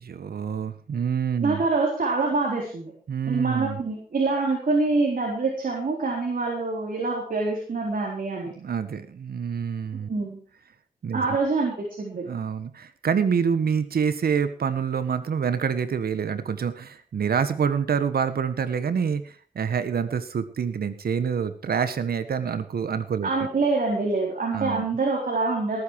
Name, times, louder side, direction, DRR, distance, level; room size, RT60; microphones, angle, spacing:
voice 1, 0.0-1.6 3.1-3.8 8.6-10.1 11.0-11.4 12.2-23.3 24.5-24.8, right 7 dB, 80° right, 12 dB, 1.5 m, -27 dB
voice 2, 1.4-2.9 3.3-8.5 10.1-10.4 11.1-12.3 23.2-25.8, right 3 dB, 60° right, -1 dB, 4.1 m, -25 dB
19.0 x 9.5 x 4.8 m, 0.42 s
cardioid pair, 60°, 16 cm